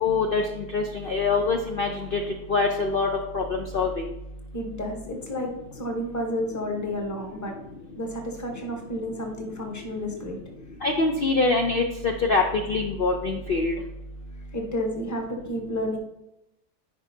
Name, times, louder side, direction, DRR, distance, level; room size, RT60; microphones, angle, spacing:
voice 1, 0.0-2.2 2.5-3.1 3.3-4.1 10.8-13.8, left 3 dB, 70° left, 3 dB, 0.5 m, -24 dB
voice 2, 4.5-7.6 8.0-10.4 14.5-16.0, equal, 15° left, 2 dB, 0.9 m, -31 dB
10.0 x 4.9 x 2.7 m, 0.88 s
omnidirectional pair, 1.7 m